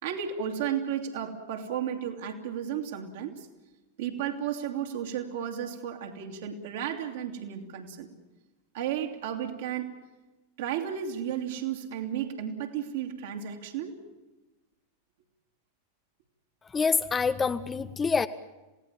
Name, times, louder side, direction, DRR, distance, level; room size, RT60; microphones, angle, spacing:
voice 1, 0.0-3.5 4.0-8.1 8.7-9.9 10.6-14.0, right 9 dB, 55° right, 2 dB, 2.6 m, -33 dB
voice 2, 16.7-18.3, left 5 dB, 15° left, 12 dB, 0.7 m, -26 dB
27.0 x 17.5 x 7.4 m, 1.1 s
figure-of-eight pair, 90°, 0 cm